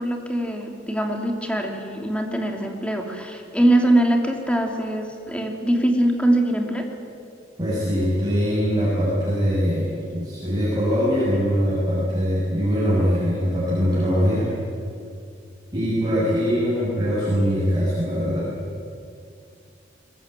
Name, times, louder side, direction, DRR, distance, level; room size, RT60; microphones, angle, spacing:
voice 1, 0.0-6.9, right 1 dB, 5° left, 3 dB, 2.8 m, -22 dB
voice 2, 7.6-14.5 15.7-18.5, equal, 20° right, -8 dB, 6.6 m, -22 dB
22.0 x 21.5 x 9.0 m, 2.4 s
head